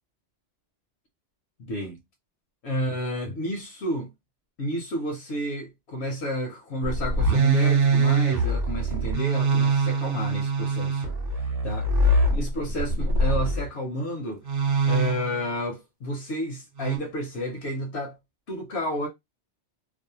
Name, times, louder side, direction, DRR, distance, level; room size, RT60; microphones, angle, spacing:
voice 1, 1.6-2.0 2.6-4.1 4.6-11.1 11.6-11.9 12.3-14.5 14.8-18.2 18.5-19.1, equal, 70° left, 1.0 m, -31 dB
sound 1, 6.8-13.7 14.5-15.5 16.8-17.0, right 3 dB, 50° right, 0.9 m, -23 dB
2.6 x 2.0 x 2.7 m
omnidirectional pair, 1.2 m